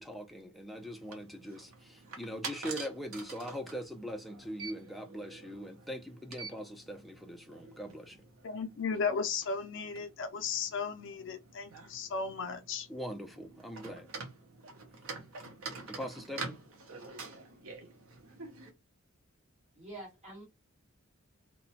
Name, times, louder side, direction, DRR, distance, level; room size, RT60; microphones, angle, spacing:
voice 1, 0.0-8.2 12.9-14.1 15.9-16.6, equal, ahead, 0.5 m, -42 dB
sound 1, 0.7-18.7, right 4 dB, 75° right, 0.7 m, -47 dB
voice 2, 8.4-12.9, left 5 dB, 60° left, 0.4 m, -35 dB
voice 3, 19.7-20.5, right 2 dB, 35° right, 1.7 m, -46 dB
2.9 x 2.1 x 2.7 m
head